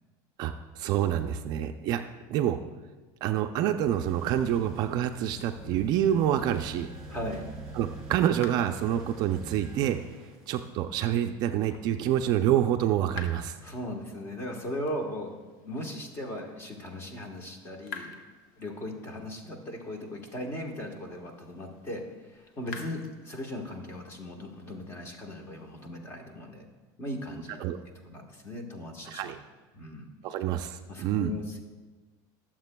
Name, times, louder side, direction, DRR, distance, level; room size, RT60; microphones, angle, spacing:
voice 1, 0.4-2.0 2.3-2.6 3.2-6.9 7.8-10.0 10.5-13.6 27.6-27.8 29.1-29.4 30.2-31.3, right 11 dB, 45° right, 7 dB, 0.4 m, -27 dB
sound 1, 3.8-10.7, right 2 dB, 10° right, 2.9 m, -45 dB
voice 2, 7.1-7.4 13.6-15.3 15.6-18.1 18.6-22.0 22.3-26.6 27.0-27.6 28.0-29.4 29.7-30.1 30.9-31.6, left 1 dB, 25° left, 3 dB, 1.2 m, -38 dB
sound 2, 7.6-25.9, left 5 dB, 65° left, 1.0 m, -51 dB
21.5 x 7.4 x 2.2 m, 1.3 s
cardioid pair, 165°, 10 cm